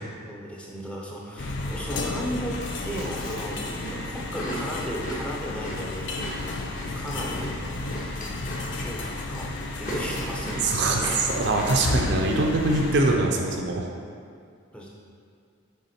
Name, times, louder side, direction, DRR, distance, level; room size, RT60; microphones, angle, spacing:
voice 1, 0.2-6.2 6.8-7.6 8.8-9.5 9.8-11.2 14.7-14.9, equal, 5° left, -4 dB, 0.7 m, -35 dB
sound 1, 1.4-13.2, left 2 dB, 60° left, 0.5 m, -32 dB
Chewing mastication, 2.4-13.2, equal, 40° left, 1.3 m, -38 dB
voice 2, 10.6-13.9, right 2 dB, 55° right, 1 dB, 0.5 m, -23 dB
6.9 x 3.6 x 4.3 m, 2.2 s
head